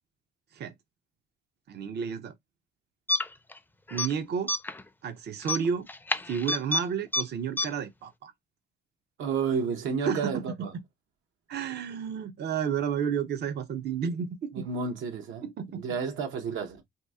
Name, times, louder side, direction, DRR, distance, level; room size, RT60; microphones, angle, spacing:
voice 1, 1.7-2.3 3.9-4.5 5.0-5.9 6.3-8.3 10.0-10.4 11.5-14.7 15.4-15.8, right 7 dB, 55° right, 0.6 m, -31 dB
sound 1, 3.1-3.6 3.9-4.1 4.5-4.8 5.4-6.8 7.1-7.2 7.6-7.7, left 3 dB, 10° left, 0.4 m, -28 dB
voice 2, 9.2-10.7 14.5-15.4 15.7-16.8, right 5 dB, 80° right, 1.0 m, -31 dB
2.9 x 2.6 x 3.5 m
cardioid pair, 90°, 20 cm